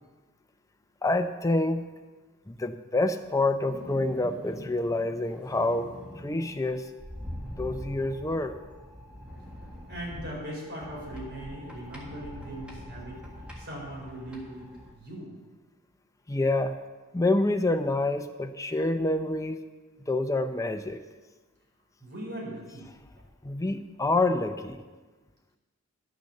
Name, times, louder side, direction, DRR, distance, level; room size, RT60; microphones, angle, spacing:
voice 1, 1.0-1.9 2.5-6.9 7.5-8.6 16.3-16.8 17.1-19.6 20.1-21.0 23.4-24.8, left 2 dB, 15° left, 7 dB, 0.6 m, -27 dB
sound 1, 3.7-14.9, equal, 5° right, 1.7 m, -44 dB
voice 2, 9.9-13.3 13.6-15.3 22.0-22.8, right 1 dB, 50° right, -4 dB, 4.4 m, -39 dB
11.5 x 6.8 x 6.6 m, 1.3 s
head